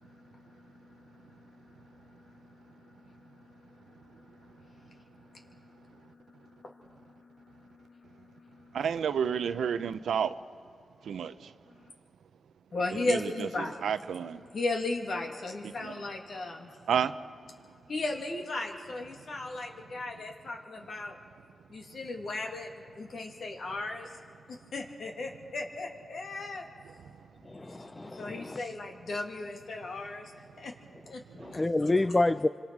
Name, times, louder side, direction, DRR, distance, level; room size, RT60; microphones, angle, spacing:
voice 1, 0.0-1.2 2.3-2.4 2.8-2.9 3.9-4.0 4.6-5.0 5.3-5.4 6.6-7.0 7.9-8.0 8.3-8.5 12.7-13.8 14.5-16.8 17.9-21.2 21.7-22.7 23.0-24.1 24.5-26.7 28.0-30.3 30.6-30.7 31.1-31.2 31.5-31.6, left 2 dB, 65° left, 2.6 m, -36 dB
voice 2, 8.7-10.3 11.1-11.3 12.9-14.4 15.6-15.9 16.9-17.1, right 7 dB, 85° right, 0.7 m, -30 dB
voice 3, 27.4-28.6 31.4-32.5, left 2 dB, 25° left, 0.5 m, -28 dB
26.5 x 26.0 x 4.8 m
cardioid pair, 65°, 0 cm